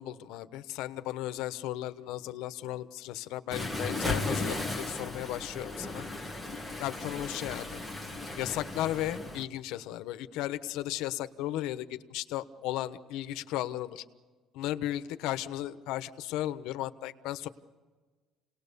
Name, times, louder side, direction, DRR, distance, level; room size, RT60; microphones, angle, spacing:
voice 1, 0.0-6.1 6.8-7.8 8.4-14.0 14.5-17.5, left 14 dB, 80° left, 11 dB, 1.1 m, -35 dB
Waves surf, 3.5-9.4, left 2 dB, 5° right, 1.7 m, -36 dB
29.5 x 19.0 x 6.9 m, 1.4 s
cardioid pair, 165°, 0 cm